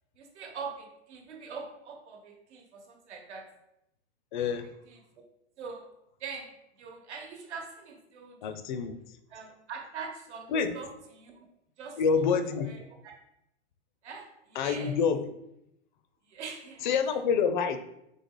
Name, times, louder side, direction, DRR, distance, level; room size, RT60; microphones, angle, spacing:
voice 1, 0.1-3.5 4.9-5.0 5.6-5.9 6.2-6.5 6.8-8.4 9.3-11.4 11.8-12.4 12.7-13.1 14.0-15.0 16.2-16.9, right 5 dB, 75° right, 3 dB, 1.1 m, -43 dB
voice 2, 4.3-4.7 8.4-8.9 10.5-10.7 12.0-12.7 14.6-15.3 16.8-17.8, left 6 dB, 45° left, 9 dB, 0.4 m, -27 dB
4.0 x 3.2 x 3.7 m, 0.83 s
hypercardioid pair, 145°, 35 cm